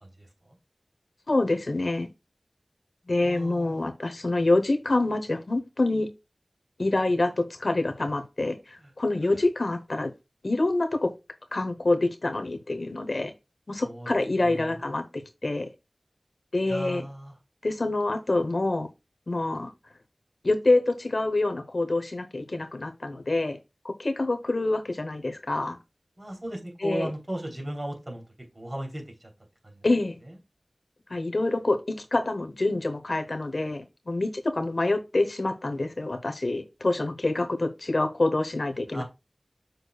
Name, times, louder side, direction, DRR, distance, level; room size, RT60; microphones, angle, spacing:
voice 1, 0.0-0.6 3.2-3.9 8.8-8.9 13.8-14.1 14.4-14.8 16.7-17.3 26.2-28.2 28.5-29.3 29.6-29.8 30.2-30.4 38.9-39.0, right 1 dB, 40° right, 3.3 m, -36 dB
voice 2, 1.3-2.1 3.1-6.1 6.8-10.1 10.4-11.1 11.5-13.3 13.7-15.7 16.5-17.0 17.6-18.9 19.3-19.7 20.4-23.6 23.8-25.8 26.8-27.1 29.8-30.2 31.1-39.0, left 2 dB, 70° left, 1.0 m, -26 dB
6.6 x 6.5 x 2.3 m
wide cardioid pair, 50°, 0 cm